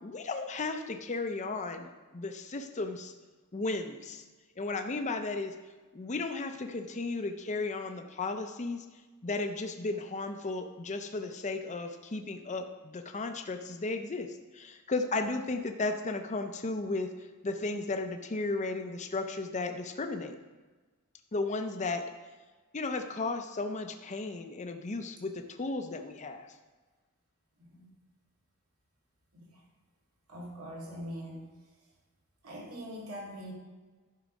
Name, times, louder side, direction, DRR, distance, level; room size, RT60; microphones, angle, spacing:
voice 1, 0.0-3.1 3.5-4.2 4.6-5.5 5.9-8.9 9.2-17.1 17.4-20.4 21.3-22.0 22.7-26.5, left 3 dB, 35° left, 6 dB, 0.6 m, -34 dB
voice 2, 30.3-31.5 32.4-33.5, equal, 80° right, -3 dB, 2.5 m, -42 dB
11.0 x 4.7 x 5.2 m, 1.3 s
head